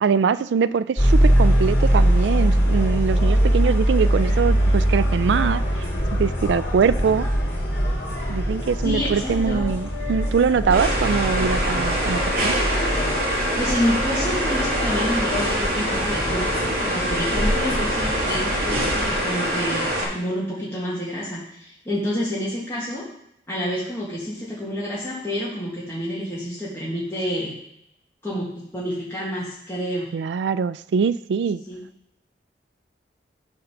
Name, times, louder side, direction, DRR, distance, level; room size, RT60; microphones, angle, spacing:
voice 1, 0.0-5.6 6.1-7.3 8.3-12.5 30.1-31.6, right 6 dB, 75° right, 15 dB, 0.3 m, -22 dB
sound 1, 1.0-19.1, equal, 75° left, 2.8 m, -22 dB
voice 2, 8.8-9.6 13.6-23.0 23.5-27.5 28.2-28.5 28.7-30.1 31.7-31.8, equal, 15° left, -8 dB, 1.7 m, -28 dB
sound 2, 10.7-20.0, equal, 55° right, 2.2 m, -25 dB
9.7 x 3.8 x 6.0 m, 0.79 s
head